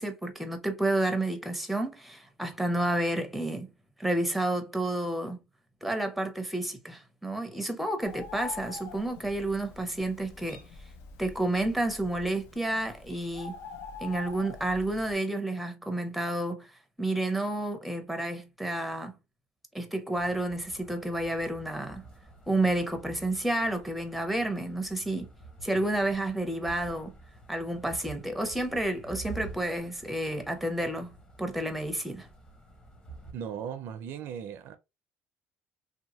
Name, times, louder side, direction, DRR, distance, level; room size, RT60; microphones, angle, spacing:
voice 1, 0.0-3.7 4.0-5.4 5.8-10.6 11.2-13.6 14.0-16.7 17.0-19.1 19.7-22.0 22.5-25.3 25.6-27.1 27.5-32.3, right 1 dB, ahead, 0.6 m, -30 dB
Bird, 8.0-15.1, left 4 dB, 85° left, 0.6 m, -45 dB
sound 1, 20.1-33.3, right 3 dB, 20° left, 0.9 m, -49 dB
voice 2, 33.3-34.7, right 8 dB, 65° right, 0.4 m, -37 dB
2.8 x 2.2 x 2.8 m
cardioid pair, 110°, 4 cm